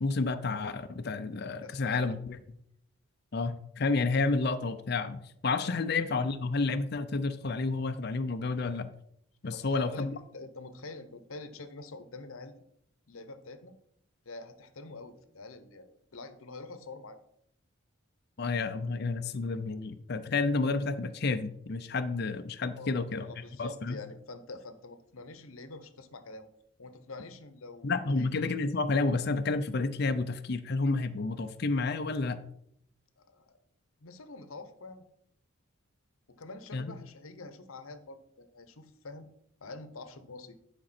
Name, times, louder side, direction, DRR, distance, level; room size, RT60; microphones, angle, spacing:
voice 1, 0.0-2.4 3.3-8.9 9.4-10.1 18.4-23.3 23.6-24.0 27.8-32.4 36.7-36.9, left 3 dB, 50° left, 10 dB, 0.5 m, -30 dB
voice 2, 1.6-2.1 5.6-5.7 9.5-10.1 10.3-12.5 13.1-13.8 14.2-17.2 22.7-26.5 26.8-28.3 33.2-33.6 34.0-35.0 36.3-39.3 39.6-40.6, left 3 dB, 80° left, 11 dB, 0.9 m, -46 dB
10.5 x 5.2 x 4.3 m, 0.72 s
head